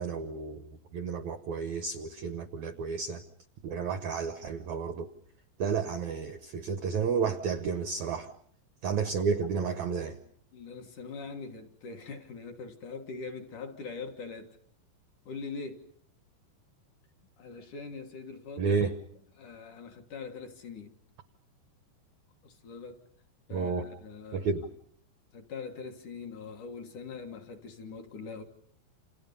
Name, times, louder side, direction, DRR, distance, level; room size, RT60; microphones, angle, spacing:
voice 1, 0.0-3.2 3.6-5.1 5.6-8.3 8.8-10.2 18.6-18.9 23.5-23.9 24.3-24.6, right 5 dB, 90° right, 1.6 m, -31 dB
voice 2, 10.5-14.6 15.3-15.9 17.4-18.8 19.3-21.0 22.4-23.0 23.5-24.5 25.3-28.4, left 4 dB, 55° left, 2.5 m, -42 dB
29.0 x 28.5 x 5.5 m
omnidirectional pair, 5.1 m